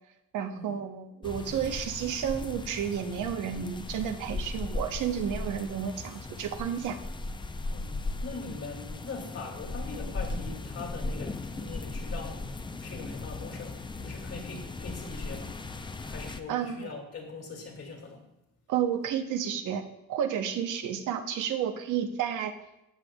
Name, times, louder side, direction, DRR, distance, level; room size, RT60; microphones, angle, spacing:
voice 1, 0.3-7.0 16.5-16.9 18.7-19.8 20.1-22.5, right 8 dB, 80° right, 6 dB, 0.9 m, -31 dB
sound 1, 1.2-16.4, left 3 dB, 15° left, 0.5 m, -37 dB
voice 2, 7.7-12.5 12.8-15.6 16.1-18.3, left 4 dB, 55° left, 1 dB, 2.3 m, -42 dB
16.0 x 6.2 x 2.3 m, 0.89 s
cardioid pair, 90°, 30 cm